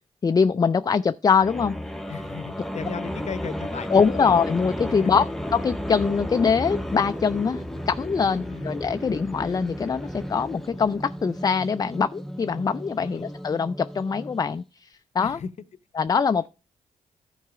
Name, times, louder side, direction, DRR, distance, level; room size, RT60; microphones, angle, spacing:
voice 1, 0.2-1.8 3.9-5.3 5.5-15.4 16.0-16.5, left 6 dB, 30° left, 0.3 m, -23 dB
sound 1, 1.3-14.6, equal, ahead, 0.8 m, -33 dB
voice 2, 2.1-4.4 5.0-5.1 8.4-8.7 13.0-13.3 15.2-15.5, left 6 dB, 55° left, 0.7 m, -35 dB
11.5 x 4.6 x 4.8 m
supercardioid pair, 55°, 14 cm